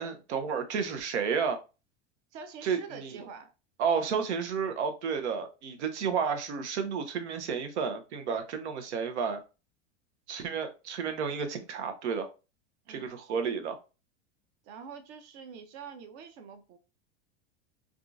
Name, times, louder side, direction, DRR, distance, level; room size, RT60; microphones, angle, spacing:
voice 1, 0.0-1.6 2.6-3.2 3.8-9.4 10.3-12.3 12.9-13.8, right 6 dB, 80° right, 0.8 m, -31 dB
voice 2, 2.3-3.5 12.9-13.1 14.6-16.8, right 6 dB, 50° right, 0.7 m, -45 dB
3.6 x 2.4 x 2.5 m
hypercardioid pair, 105°, 34 cm